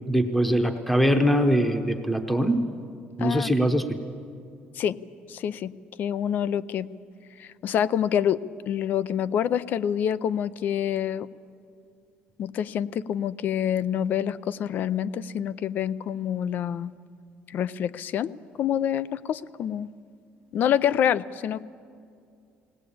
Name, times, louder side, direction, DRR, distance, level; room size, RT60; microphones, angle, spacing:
voice 1, 0.1-2.6 3.2-3.9, equal, 5° left, 6 dB, 0.9 m, -22 dB
voice 2, 3.2-3.5 4.7-5.0 5.3-6.9 7.4-8.4 8.7-11.3 12.4-16.9 17.5-18.3 18.6-19.9 20.5-21.6, left 9 dB, 50° left, 18 dB, 0.5 m, -27 dB
20.5 x 18.5 x 8.6 m, 2.4 s
cardioid pair, 150°, 4 cm